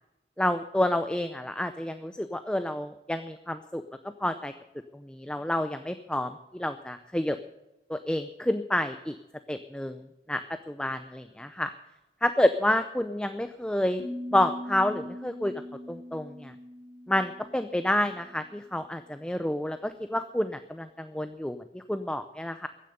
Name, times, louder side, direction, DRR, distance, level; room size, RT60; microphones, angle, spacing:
voice 1, 0.4-3.8 4.2-4.5 4.9-7.4 7.9-9.2 9.5-11.7 12.2-14.0 14.3-15.5 15.9-16.5 17.1-22.7, left 1 dB, 5° left, 9 dB, 0.5 m, -29 dB
sound 1, 14.0-18.9, left 1 dB, 45° left, 4.3 m, -42 dB
15.5 x 10.0 x 6.7 m, 0.98 s
head